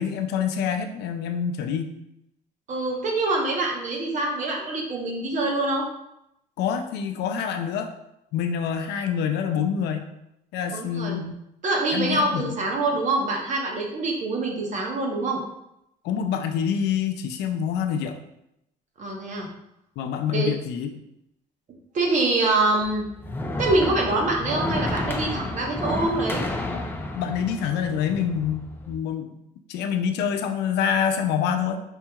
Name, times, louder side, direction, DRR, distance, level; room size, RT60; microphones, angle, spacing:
voice 1, 0.0-1.9 6.6-7.9 8.3-10.1 10.5-11.4 11.9-12.6 16.0-18.2 20.0-20.9 26.7-26.9 27.1-29.3 29.7-31.8, left 7 dB, 80° left, 6 dB, 0.5 m, -26 dB
voice 2, 2.7-5.8 10.7-11.2 11.6-15.4 19.0-19.5 20.3-20.5 21.9-23.1 23.6-26.4, right 2 dB, 45° right, 0 dB, 1.0 m, -25 dB
sound 1, 22.8-29.0, left 2 dB, 10° left, 0.4 m, -31 dB
5.3 x 2.8 x 2.3 m, 0.82 s
cardioid pair, 110°, 17 cm